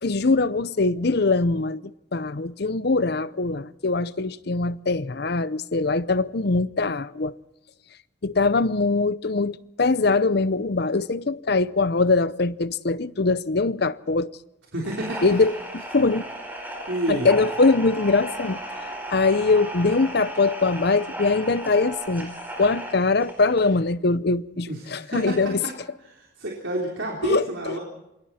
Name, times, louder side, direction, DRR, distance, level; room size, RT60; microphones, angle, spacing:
voice 1, 0.0-7.3 8.2-14.3 15.2-16.2 17.1-18.6 19.1-25.6 27.2-27.8, left 3 dB, 55° left, 0.7 m, -22 dB
voice 2, 14.7-15.3 16.9-17.3 24.7-25.4 26.1-27.8, right 1 dB, 65° right, 3.8 m, -29 dB
sound 1, 14.8-23.8, right 1 dB, 10° right, 4.7 m, -35 dB
27.5 x 21.5 x 4.3 m
head